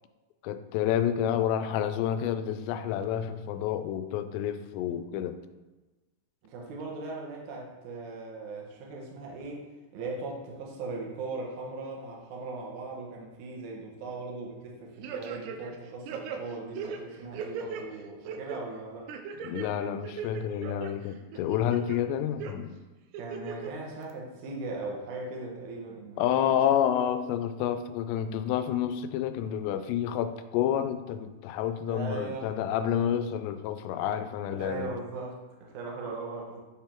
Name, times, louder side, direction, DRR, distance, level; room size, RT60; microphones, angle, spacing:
voice 1, 0.4-5.4 19.4-22.8 26.2-34.9, left 9 dB, 85° left, 10 dB, 2.7 m, -29 dB
voice 2, 6.4-9.6 9.9-19.1 23.2-26.2 26.5-26.6 31.9-32.5 34.6-35.4 35.7-36.6, right 3 dB, 60° right, -2 dB, 2.1 m, -39 dB
sound 1, 15.0-15.8 16.1-17.8 18.3-18.6 19.1-19.7 20.0-20.9 21.3-22.0 22.4-22.5 23.1-23.7 24.1-24.2, right 7 dB, 80° right, 2.6 m, -38 dB
9.9 x 3.8 x 4.5 m, 1.1 s
omnidirectional pair, 4.9 m